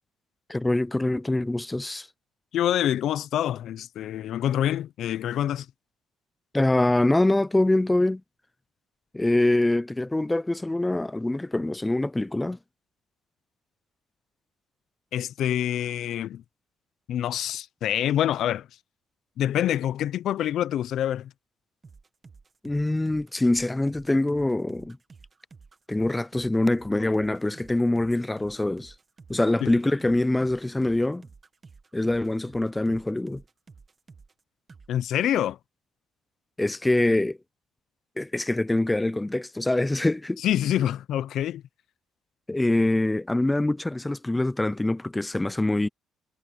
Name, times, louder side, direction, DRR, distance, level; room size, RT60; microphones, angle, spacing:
voice 1, 0.5-2.1 6.5-8.2 9.1-12.6 22.6-25.0 25.9-28.9 29.3-31.2 31.9-33.4 36.6-37.4 38.2-40.4 42.5-45.9, left 2 dB, 10° left, 0.4 m, -24 dB
voice 2, 2.5-5.7 15.1-16.4 17.1-18.7 19.4-21.3 29.6-29.7 34.9-35.6 40.4-41.6, left 11 dB, 65° left, 0.5 m, -26 dB
sound 1, 21.8-34.4 34.7-34.9, right 4 dB, 25° right, 1.6 m, -51 dB
cardioid pair, 140°, 0 cm